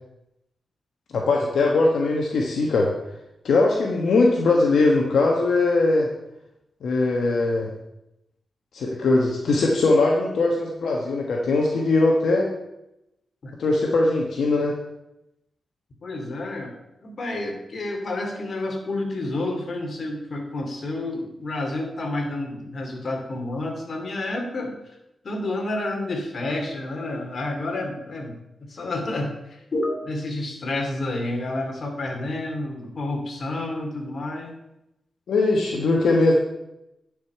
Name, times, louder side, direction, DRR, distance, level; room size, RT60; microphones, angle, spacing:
voice 1, 1.1-2.9 3.4-6.1 6.8-7.7 8.7-12.5 13.6-14.8 35.3-36.4, left 3 dB, 85° left, -1 dB, 1.3 m, -20 dB
voice 2, 16.0-16.7 17.0-24.8 25.2-28.4 28.7-34.5, left 2 dB, 55° left, 2 dB, 2.5 m, -29 dB
10.5 x 5.3 x 6.7 m, 0.88 s
cardioid pair, 70°, 0 cm